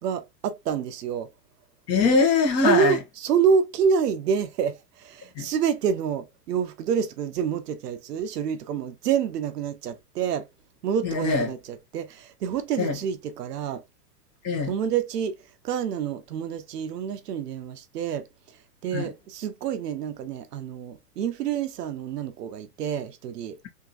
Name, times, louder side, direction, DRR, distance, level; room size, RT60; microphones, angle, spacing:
voice 1, 0.0-1.3 2.6-10.5 10.8-13.8 14.6-15.4 15.6-18.3 18.8-23.6, right 7 dB, 90° right, 0.8 m, -27 dB
voice 2, 1.9-3.0 5.3-5.5 11.0-11.5 12.8-12.9 14.4-14.7 18.9-19.1, left 4 dB, 30° left, 1.3 m, -22 dB
3.6 x 2.8 x 2.4 m
hypercardioid pair, 130°, 47 cm